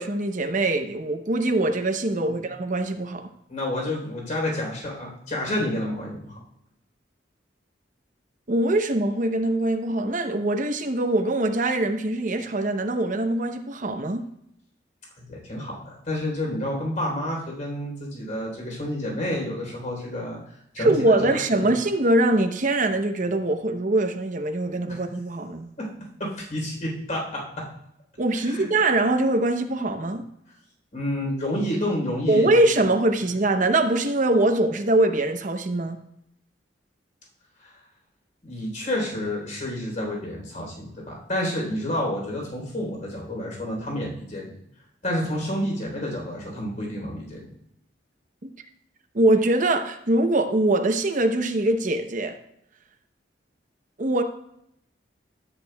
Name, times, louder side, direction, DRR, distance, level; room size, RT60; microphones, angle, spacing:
voice 1, 0.0-3.3 8.5-14.3 20.8-25.7 28.2-30.3 32.3-36.0 48.4-48.5 49.1-52.4 54.0-54.2, right 2 dB, 45° right, 0.8 m, -23 dB
voice 2, 3.5-6.4 15.2-20.4 20.7-21.7 25.8-25.9 26.2-27.6 28.3-28.7 30.9-32.8 37.6-37.7 38.4-44.6 45.0-47.4, left 1 dB, 45° left, 3.6 m, -29 dB
13.0 x 8.3 x 2.3 m
head